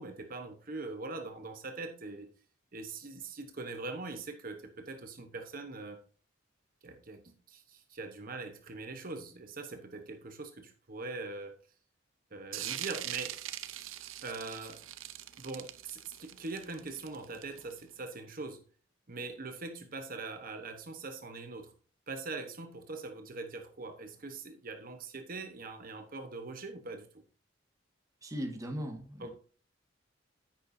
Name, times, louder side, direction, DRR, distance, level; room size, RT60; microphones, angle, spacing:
voice 1, 0.0-2.3 2.7-6.0 6.8-11.5 12.3-13.4 14.2-14.8 15.4-18.6 19.1-21.7 22.1-27.2 29.2-29.3, right 3 dB, 45° right, 6 dB, 1.0 m, -42 dB
sound 1, 12.5-17.8, right 12 dB, 80° right, 0.7 m, -42 dB
voice 2, 28.2-29.3, equal, 15° right, 3 dB, 1.5 m, -38 dB
10.5 x 8.4 x 2.6 m, 0.40 s
head